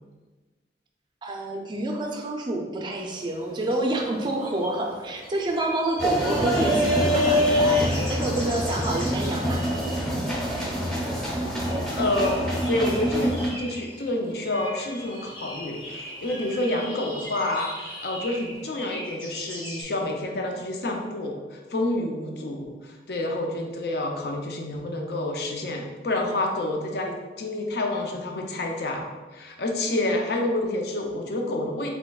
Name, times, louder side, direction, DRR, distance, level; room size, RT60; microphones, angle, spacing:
voice 1, 1.2-9.9, right 1 dB, 25° right, 1 dB, 0.4 m, -28 dB
sound 1, 3.0-19.8, equal, 30° left, 1.4 m, -40 dB
sound 2, 6.0-13.5, equal, 5° left, 0.7 m, -25 dB
voice 2, 12.0-31.9, left 1 dB, 65° left, 2 dB, 0.5 m, -28 dB
4.3 x 3.4 x 2.3 m, 1.3 s
head